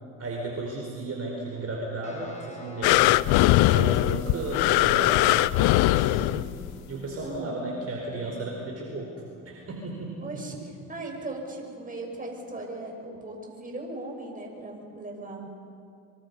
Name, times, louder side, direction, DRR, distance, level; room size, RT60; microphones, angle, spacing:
voice 1, 0.2-3.2 3.7-6.5 6.9-9.1 9.4-10.4, right 2 dB, 35° right, -1 dB, 4.9 m, -34 dB
sound 1, 2.0-12.9, left 1 dB, 15° left, 5.1 m, -49 dB
sound 2, 2.8-6.7 7.4-7.5, left 18 dB, 65° left, 0.6 m, -21 dB
voice 2, 7.2-7.6 10.2-10.6 10.9-15.5, right 2 dB, 20° right, 0 dB, 6.3 m, -38 dB
25.0 x 25.0 x 5.6 m, 2.4 s
supercardioid pair, 85°, 41 cm